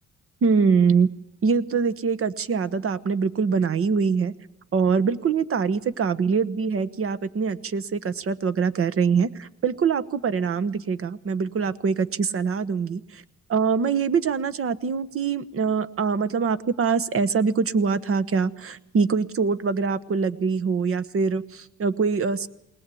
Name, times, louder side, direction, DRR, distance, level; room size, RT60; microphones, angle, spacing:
voice 1, 0.4-1.1 1.4-4.3 4.7-13.2 13.5-22.5, right 5 dB, 45° right, 14 dB, 1.1 m, -24 dB
20.5 x 19.5 x 8.5 m, 0.78 s
cardioid pair, 90°, 30 cm